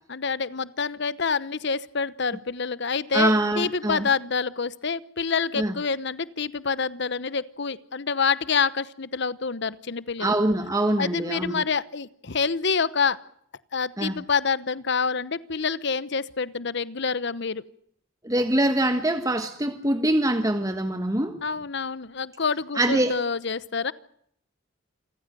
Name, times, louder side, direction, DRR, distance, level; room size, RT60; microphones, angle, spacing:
voice 1, 0.1-10.4 11.0-13.2 13.7-17.7 21.4-23.9, left 5 dB, 60° left, 17 dB, 1.0 m, -27 dB
voice 2, 3.1-4.1 5.5-5.7 10.2-11.6 14.0-14.1 18.2-21.4 22.7-23.2, right 1 dB, 15° right, 8 dB, 1.4 m, -24 dB
28.0 x 15.0 x 9.2 m, 0.69 s
head